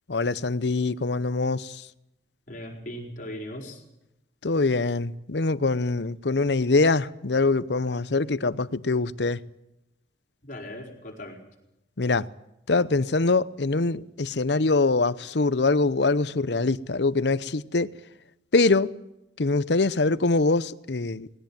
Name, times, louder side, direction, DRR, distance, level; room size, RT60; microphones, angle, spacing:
voice 1, 0.1-1.8 4.4-9.4 12.0-12.3 12.7-17.9 18.5-18.9 19.4-21.3, left 3 dB, 75° left, 0.8 m, -24 dB
voice 2, 2.5-3.8 10.4-11.4, left 1 dB, 45° left, 4.9 m, -38 dB
20.5 x 18.0 x 9.0 m
head